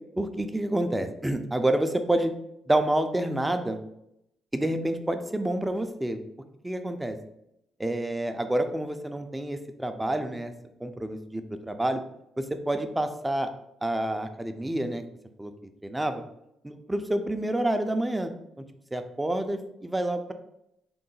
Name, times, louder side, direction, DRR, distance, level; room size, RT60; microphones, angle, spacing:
voice 1, 0.2-2.3 2.7-3.8 4.5-6.2 6.6-7.2 7.8-10.5 10.8-12.0 12.4-13.5 13.8-15.0 15.4-15.5 15.8-16.2 16.6-18.3 18.9-20.3, right 1 dB, 10° right, 8 dB, 0.4 m, -28 dB
3.8 x 2.1 x 3.8 m, 0.81 s
cardioid pair, 90°, 0 cm